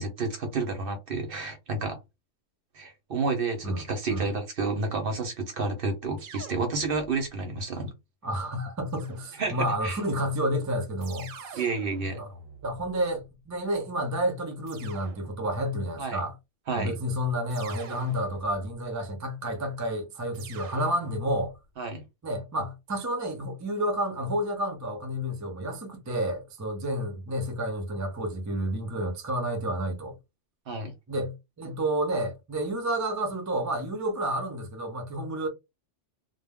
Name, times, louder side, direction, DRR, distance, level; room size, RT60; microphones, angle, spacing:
voice 1, 0.0-2.0 2.8-7.9 9.4-10.0 11.5-12.2 16.0-16.2 16.7-16.9 21.8-22.0 30.7-30.9, right 3 dB, 55° right, 0.8 m, -30 dB
voice 2, 3.6-4.3 8.2-11.7 12.1-12.3 12.6-16.4 16.7-21.5 22.2-30.2 31.1-35.5, right 1 dB, 25° right, 0.4 m, -30 dB
sound 1, 6.2-7.4 8.9-9.8 11.0-13.3 14.7-15.8 17.5-18.9 20.3-21.6, right 4 dB, 90° right, 1.0 m, -46 dB
2.2 x 2.0 x 3.5 m
omnidirectional pair, 1.3 m